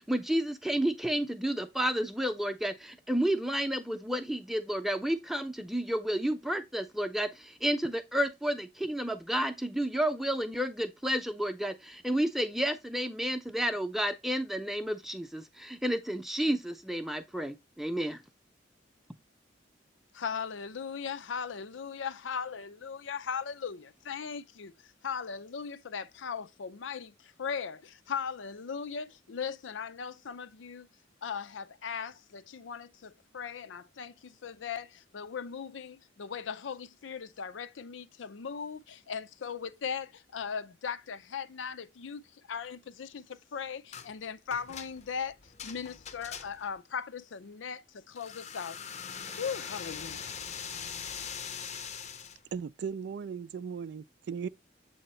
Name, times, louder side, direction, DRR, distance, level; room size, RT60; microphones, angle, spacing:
voice 1, 0.0-18.2, right 1 dB, ahead, 0.6 m, -31 dB
voice 2, 20.1-30.9 31.2-48.8 49.4-50.4, left 6 dB, 85° left, 0.5 m, -38 dB
sound 1, 43.9-44.1 44.5-46.8 48.1-52.4, left 7 dB, 35° left, 0.6 m, -42 dB
voice 3, 52.5-54.5, right 6 dB, 60° right, 0.3 m, -37 dB
7.7 x 2.8 x 4.3 m
head